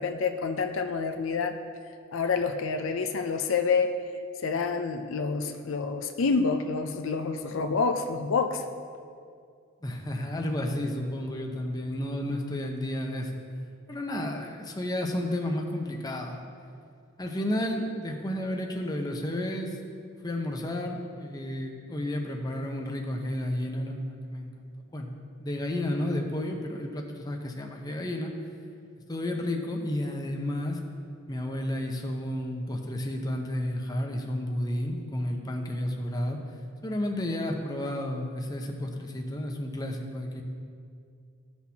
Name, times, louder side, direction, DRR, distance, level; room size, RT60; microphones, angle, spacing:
voice 1, 0.0-1.5 2.1-3.9 4.4-8.6, left 4 dB, 65° left, 6 dB, 0.5 m, -28 dB
voice 2, 9.8-13.4 13.9-16.4 17.2-19.8 20.2-25.1 25.4-28.3 29.1-30.8 31.3-36.4 36.8-40.4, left 1 dB, 20° left, 2 dB, 0.7 m, -32 dB
15.0 x 6.1 x 2.8 m, 2.3 s
head